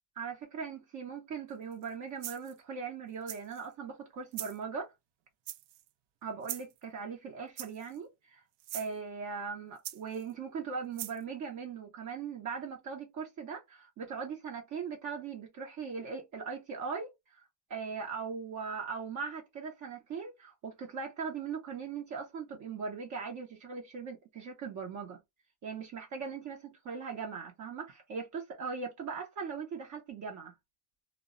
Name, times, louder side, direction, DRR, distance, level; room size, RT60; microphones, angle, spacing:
voice 1, 0.2-4.9 6.2-8.4 8.7-25.2 25.6-30.5, right 5 dB, 45° right, 0.7 m, -40 dB
sound 1, 1.7-1.9 2.2-2.6 3.3-3.7 4.3-4.6 5.5-5.9 6.4-6.8 7.6-8.0 8.6-8.9 9.8-10.3 11.0-11.2, right 13 dB, 85° right, 0.5 m, -41 dB
2.2 x 2.0 x 3.6 m
cardioid pair, 135°, 41 cm